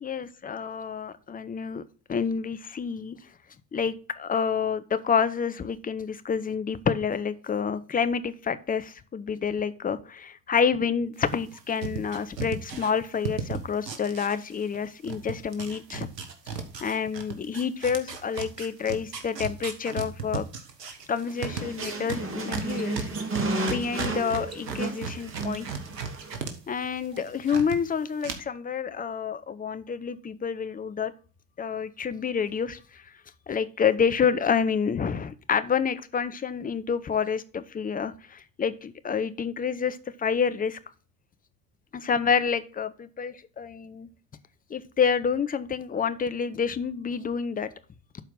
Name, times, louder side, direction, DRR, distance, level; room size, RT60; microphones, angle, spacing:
voice 1, 0.0-1.8 2.1-3.2 3.7-16.1 16.8-20.4 21.1-23.1 23.6-25.7 26.7-31.1 31.6-33.1 33.5-40.8 41.9-44.1 44.7-47.7, left 6 dB, 20° left, 12 dB, 0.7 m, -28 dB
sound 1, 11.2-14.8 15.0-26.5 26.8-27.8 28.2-28.3, right 6 dB, 85° right, 1.4 m, -35 dB
sound 2, 21.3-26.4, right 2 dB, 25° right, 2.5 m, -33 dB
12.0 x 4.5 x 3.8 m, 0.38 s
figure-of-eight pair, 75°, 48 cm